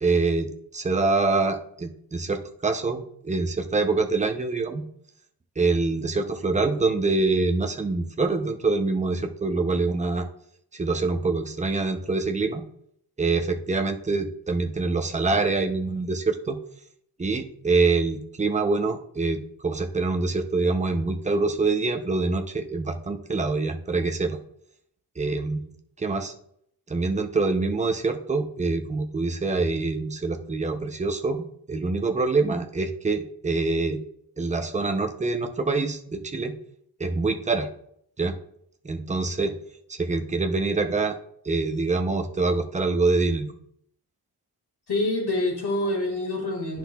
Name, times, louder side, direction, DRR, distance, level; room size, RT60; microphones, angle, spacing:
voice 1, 0.0-4.8 5.6-10.3 10.7-12.6 13.2-16.6 17.2-24.4 25.2-25.7 26.0-26.3 26.9-34.0 34.4-36.6 37.0-37.7 38.2-38.4 38.8-39.5 39.9-41.2 41.4-43.5, right 3 dB, 20° right, 5 dB, 0.5 m, -25 dB
voice 2, 44.9-46.8, left 2 dB, 80° left, 1 dB, 2.0 m, -26 dB
10.0 x 5.9 x 2.3 m, 0.69 s
wide cardioid pair, 150°, 39 cm